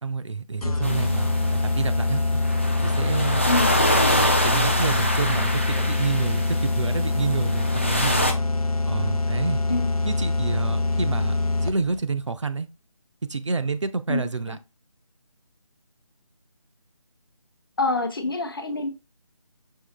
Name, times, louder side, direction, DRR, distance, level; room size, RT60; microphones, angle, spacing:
voice 1, 0.0-2.2 2.8-3.5 4.2-8.3 8.8-9.6 10.0-12.7 13.3-14.6, right 4 dB, 55° right, 0.5 m, -29 dB
sound 1, 0.6-12.0, left 2 dB, 90° left, 0.6 m, -24 dB
sound 2, 0.8-8.3, equal, 20° left, 0.4 m, -26 dB
voice 2, 14.1-14.6 17.8-19.0, left 2 dB, 40° left, 0.7 m, -26 dB
5.5 x 3.0 x 3.1 m
figure-of-eight pair, 160°, 18 cm